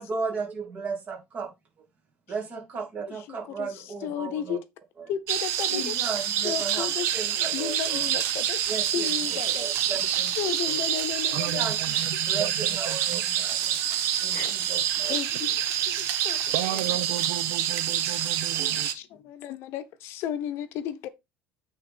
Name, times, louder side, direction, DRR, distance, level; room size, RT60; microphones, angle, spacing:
voice 1, 0.0-1.5 2.3-4.6 5.7-6.9 7.1-8.1 8.7-9.1 9.6-10.8 11.5-11.8 12.3-13.6 14.2-15.2, right 5 dB, 30° right, 2.5 m, -35 dB
voice 2, 3.1-4.6 5.1-9.7 10.1-11.7 11.9-12.1 14.3-14.6 15.1-16.4 16.7-16.8 18.8-21.1, left 10 dB, 55° left, 0.8 m, -34 dB
sound 1, 5.3-18.9, right 10 dB, 55° right, 1.1 m, -27 dB
voice 3, 11.3-13.0 16.5-18.9, right 16 dB, 90° right, 0.6 m, -34 dB
8.9 x 3.8 x 4.3 m
cardioid pair, 165°, 5 cm